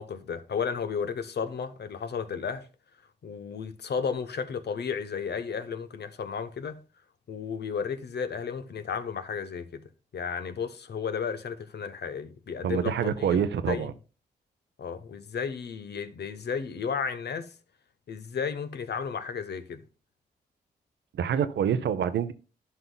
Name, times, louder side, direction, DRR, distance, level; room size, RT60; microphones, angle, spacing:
voice 1, 0.0-2.7 3.2-6.8 7.3-9.8 10.1-13.9 14.8-17.5 18.1-19.8, left 6 dB, 65° left, 0.8 m, -33 dB
voice 2, 12.6-13.9 21.1-22.3, right 8 dB, 70° right, 0.6 m, -26 dB
11.0 x 5.6 x 2.2 m
supercardioid pair, 45°, 19 cm